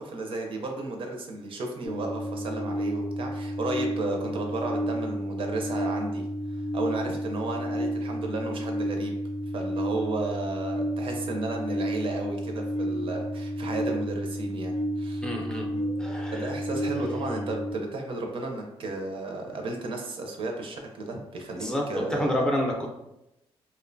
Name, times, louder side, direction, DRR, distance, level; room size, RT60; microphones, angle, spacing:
voice 1, 0.0-9.1 9.5-15.3 16.3-22.4, right 2 dB, 55° right, 2 dB, 0.5 m, -33 dB
sound 1, 1.8-17.7, equal, 55° left, 0.5 m, -31 dB
voice 2, 15.2-16.6 21.6-22.9, left 1 dB, 5° left, -1 dB, 0.5 m, -29 dB
2.6 x 2.1 x 2.5 m, 0.88 s
cardioid pair, 95°, 11 cm